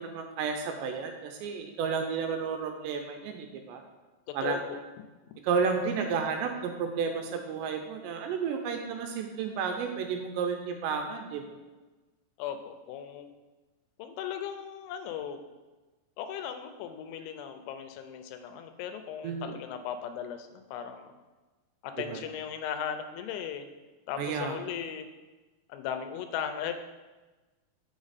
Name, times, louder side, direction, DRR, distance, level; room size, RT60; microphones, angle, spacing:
voice 1, 0.0-3.8 4.3-4.6 5.4-11.4 19.2-19.6 22.0-22.2 24.2-24.6, right 5 dB, 80° right, 4 dB, 2.7 m, -32 dB
voice 2, 4.3-4.8 12.4-13.3 14.0-15.4 16.2-21.1 21.8-23.7 24.1-25.1 25.7-26.7, left 8 dB, 85° left, 8 dB, 3.0 m, -37 dB
6.6 x 6.3 x 4.0 m, 1.2 s
omnidirectional pair, 5.3 m